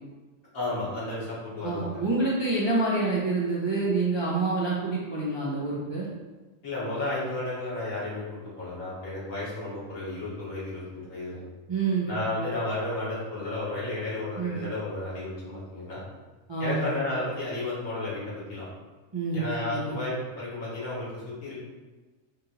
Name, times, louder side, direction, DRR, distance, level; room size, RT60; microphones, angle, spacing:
voice 1, 0.5-2.0 6.6-11.4 12.1-16.0 16.6-18.7 19.3-21.6, left 2 dB, 80° left, -9 dB, 1.9 m, -33 dB
voice 2, 1.6-6.1 11.7-12.1 14.4-14.6 16.5-16.9 19.1-20.0, right 3 dB, 30° right, -7 dB, 0.5 m, -27 dB
5.1 x 2.6 x 2.8 m, 1.3 s
omnidirectional pair, 1.4 m